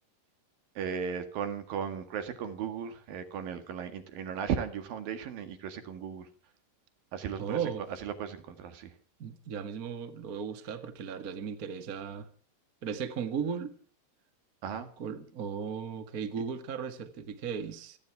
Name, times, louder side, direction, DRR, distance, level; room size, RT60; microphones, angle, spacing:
voice 1, 0.8-6.3 7.1-7.6 8.0-8.9 14.6-14.9 16.4-16.5, right 7 dB, 80° right, 3.6 m, -36 dB
voice 2, 7.4-7.8 9.2-12.3 12.8-13.7 15.0-18.0, right 7 dB, 35° right, 1.6 m, -36 dB
28.5 x 10.0 x 4.7 m
omnidirectional pair, 4.0 m